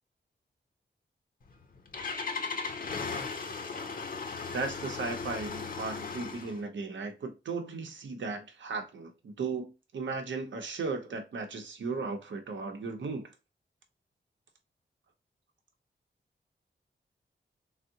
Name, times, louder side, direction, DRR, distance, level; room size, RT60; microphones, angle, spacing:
Engine starting, 1.4-6.6, left 4 dB, 50° left, 0.6 m, -37 dB
voice 1, 4.5-13.3, right 4 dB, 85° right, 0.7 m, -36 dB
3.6 x 2.1 x 2.6 m
wide cardioid pair, 80°, 19 cm